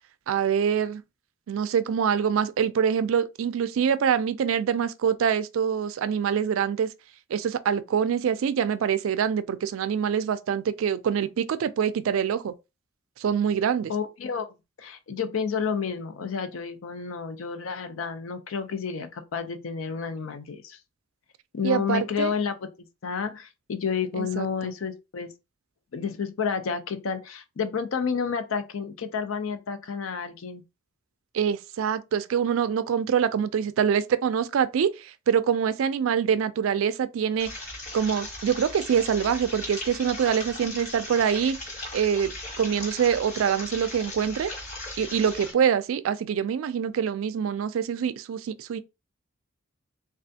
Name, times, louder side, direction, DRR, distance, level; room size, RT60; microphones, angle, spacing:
voice 1, 0.3-1.0 1.5-6.9 7.3-12.5 13.2-13.9 21.6-22.3 24.2-24.7 31.3-37.5 37.9-41.6 41.9-44.5 45.0-48.8, right 7 dB, 80° right, 0.3 m, -25 dB
voice 2, 13.9-20.8 21.5-25.3 25.9-30.6, left 6 dB, 80° left, 0.5 m, -30 dB
sound 1, 37.4-45.5, left 2 dB, 35° left, 1.1 m, -38 dB
3.3 x 2.4 x 2.7 m
head